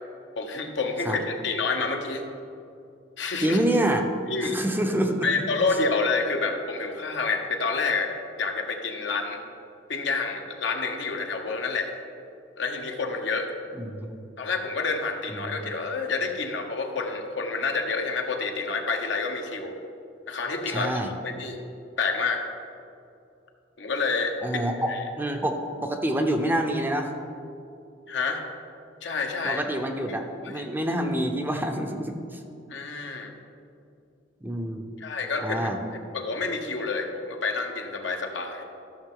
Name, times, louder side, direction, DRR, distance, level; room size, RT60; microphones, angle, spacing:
voice 1, 0.4-2.2 3.2-3.6 4.3-4.6 5.2-8.1 8.4-9.4 9.9-12.0 12.6-13.5 14.4-19.7 20.3-20.9 21.2-21.6 22.0-22.4 23.8-24.6 24.9-25.0 28.1-28.4 29.0-29.6 30.1-30.2 30.4-30.6 32.7-33.3 35.0-35.7 36.1-38.6, left 4 dB, 65° left, 3 dB, 1.0 m, -28 dB
voice 2, 3.4-4.1 4.4-5.3 13.7-14.3 15.3-15.7 20.7-21.1 24.4-24.9 25.2-27.1 29.4-32.4 34.4-34.9 35.4-35.8, right 1 dB, 10° right, 4 dB, 0.6 m, -27 dB
13.5 x 6.6 x 3.8 m, 2.6 s
head